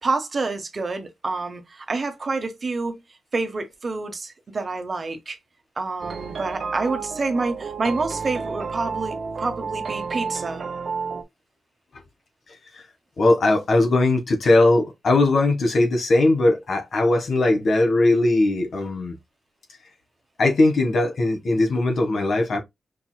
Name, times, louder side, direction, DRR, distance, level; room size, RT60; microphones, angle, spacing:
voice 1, 0.0-3.0 3.3-5.4 5.8-10.6, right 3 dB, 45° right, 1.2 m, -28 dB
sound 1, 6.0-11.2, right 5 dB, 65° right, 0.7 m, -31 dB
voice 2, 13.2-19.1 20.4-22.6, left 2 dB, 70° left, 1.6 m, -19 dB
5.2 x 3.0 x 2.3 m
cardioid pair, 75°, 0 cm